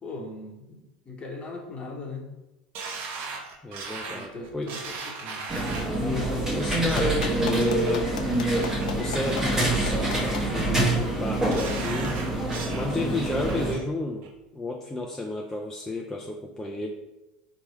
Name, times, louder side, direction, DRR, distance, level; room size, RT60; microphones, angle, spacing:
voice 1, 0.0-2.3 3.9-5.5 6.0-6.6, left 4 dB, 25° left, 0 dB, 0.9 m, -39 dB
sound 1, 2.7-6.0 6.6-7.0 7.4-7.9 8.3-8.9 9.3-10.0 10.3-10.8 11.3-12.9 13.2-13.8 14.2-14.3, right 4 dB, 55° right, 0.7 m, -38 dB
voice 2, 3.6-4.7 6.5-8.1 9.0-12.2 12.7-14.3 14.5-16.9, left 2 dB, 10° left, -1 dB, 0.4 m, -32 dB
sound 2, 5.5-13.7, right 1 dB, 15° right, 1.0 m, -26 dB
Clapping, 6.7-10.4 12.0-12.1, left 7 dB, 85° left, 0.3 m, -36 dB
3.1 x 2.2 x 4.1 m, 0.99 s
hypercardioid pair, 85°, 4 cm